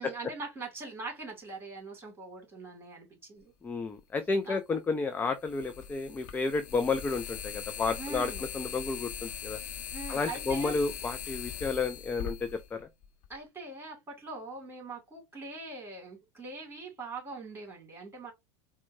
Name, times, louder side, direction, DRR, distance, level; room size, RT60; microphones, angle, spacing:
voice 1, 0.0-3.5 4.4-4.6 8.0-8.5 9.9-10.8 13.3-18.3, right 3 dB, 15° right, 2.4 m, -42 dB
voice 2, 3.6-9.6 10.1-12.9, left 4 dB, 10° left, 0.3 m, -31 dB
sound 1, 4.0-4.1 5.4-13.4, left 8 dB, 55° left, 0.7 m, -40 dB
4.3 x 2.2 x 2.6 m
hypercardioid pair, 85°, 15 cm